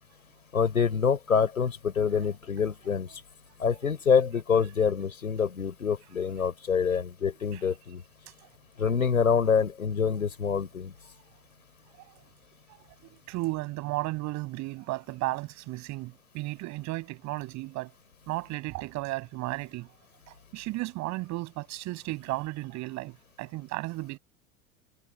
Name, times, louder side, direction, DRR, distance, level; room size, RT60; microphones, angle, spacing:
voice 1, 0.5-3.1 3.6-8.0 8.8-10.9, left 6 dB, 75° left, 5.6 m, -26 dB
voice 2, 13.0-17.9 18.3-19.9 20.3-24.2, right 20 dB, 40° right, 6.3 m, -34 dB
figure-of-eight pair, 85°, 42 cm